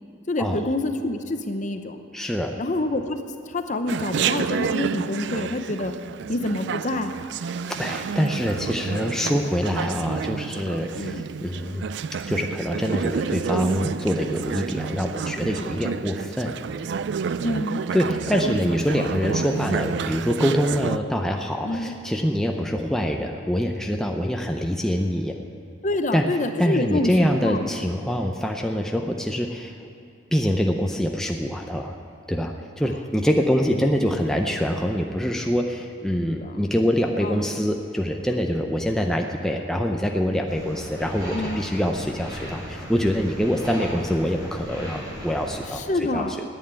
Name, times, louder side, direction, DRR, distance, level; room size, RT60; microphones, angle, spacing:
voice 1, 0.3-2.0 2.6-3.2 3.5-5.9 6.3-7.1 11.0-11.2 17.4-17.8 18.4-18.5 21.6-21.9 25.8-27.7 36.3-36.6 37.2-37.3 41.3-41.6 45.8-46.4, left 2 dB, 35° left, 7 dB, 0.7 m, -27 dB
voice 2, 2.1-2.6 7.7-11.9 12.3-16.8 17.9-25.4 26.1-26.3 26.6-29.7 30.3-32.0 32.3-46.4, equal, 5° left, 2 dB, 0.5 m, -25 dB
Chatter, 3.9-21.0, right 6 dB, 60° right, 0.3 m, -30 dB
sound 1, 40.5-45.7, equal, 20° right, 2.4 m, -36 dB
10.5 x 9.0 x 8.8 m, 2.6 s
head